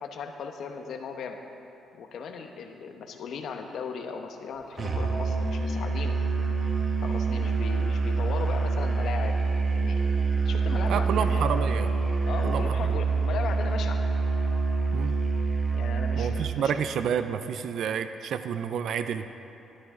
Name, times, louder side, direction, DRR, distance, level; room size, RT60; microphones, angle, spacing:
voice 1, 0.0-1.4 1.9-6.2 7.0-9.4 9.7-10.1 10.4-11.6 12.2-14.0 15.7-16.7, left 6 dB, 70° left, 4 dB, 1.0 m, -37 dB
Musical instrument, 4.8-16.6, right 4 dB, 40° right, 1.3 m, -26 dB
voice 2, 10.9-11.9 12.4-12.6 14.9-15.1 16.2-19.2, right 8 dB, 70° right, 10 dB, 0.4 m, -29 dB
12.5 x 12.0 x 3.7 m, 2.9 s
cardioid pair, 90°, 0 cm